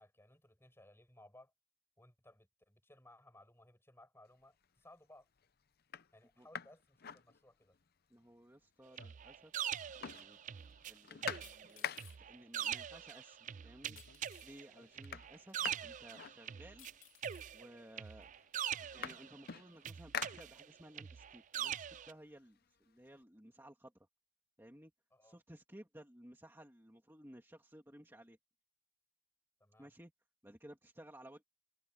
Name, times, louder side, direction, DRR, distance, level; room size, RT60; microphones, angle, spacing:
voice 1, 0.0-1.5 2.0-5.3 6.1-7.7 25.1-25.4 29.6-29.9, left 1 dB, 10° left, 6.2 m, -62 dB
sound 1, 4.4-4.8 5.4-5.5 5.8-7.9 8.2-8.3 8.5-9.4 9.6-12.4 13.3-13.4 13.8-14.3 14.6-17.0 17.8-17.9 18.2-21.0 21.4-23.1, left 8 dB, 50° left, 0.7 m, -47 dB
voice 2, 8.1-9.5 10.0-10.6 10.9-14.0 14.4-16.9 17.5-18.3 18.9-23.9 24.6-24.9 25.2-28.4 29.8-30.1 30.4-31.4, right 1 dB, 10° right, 2.4 m, -57 dB
sound 2, 9.0-10.9 11.2-16.9 17.2-19.5 19.9-22.1, right 9 dB, 40° right, 0.3 m, -43 dB
sound 3, 11.4-12.2 14.0-14.5 15.5-15.6 16.8-17.5 18.2-18.3, left 13 dB, 85° left, 3.5 m, -60 dB
open air
head